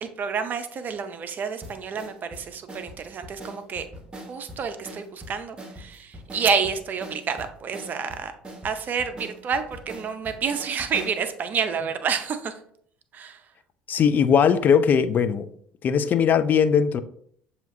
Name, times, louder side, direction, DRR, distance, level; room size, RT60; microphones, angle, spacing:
voice 1, 0.0-3.9 4.2-8.3 8.6-12.5 13.1-13.4, right 6 dB, 40° right, 0.6 m, -29 dB
sound 1, 1.6-11.2, right 1 dB, 20° right, 1.2 m, -42 dB
voice 2, 13.9-15.5 15.8-17.0, left 7 dB, 40° left, 0.4 m, -19 dB
7.0 x 2.8 x 2.6 m
hypercardioid pair, 60°, 5 cm